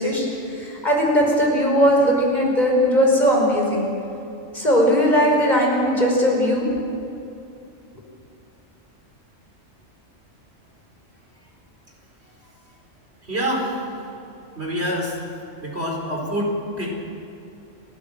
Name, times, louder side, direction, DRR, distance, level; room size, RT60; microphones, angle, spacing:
voice 1, 0.0-3.8 4.5-6.7, equal, 35° left, -1 dB, 5.2 m, -19 dB
voice 2, 13.2-13.8 14.5-15.2 15.6-16.9, equal, 55° right, -1 dB, 4.9 m, -26 dB
30.0 x 15.5 x 7.4 m, 2.7 s
omnidirectional pair, 1.3 m